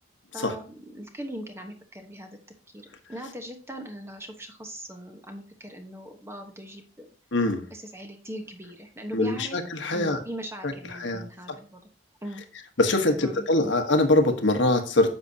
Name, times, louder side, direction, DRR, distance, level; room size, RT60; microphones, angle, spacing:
voice 1, 0.3-2.4 2.7-7.1 7.7-9.6 9.9-11.8 12.2-12.4 13.1-13.7, equal, 15° right, 4 dB, 1.1 m, -40 dB
voice 2, 7.3-7.6 9.1-10.2 10.6-11.2 12.8-15.2, left 2 dB, 70° left, 6 dB, 1.3 m, -23 dB
9.9 x 7.5 x 2.8 m, 0.36 s
head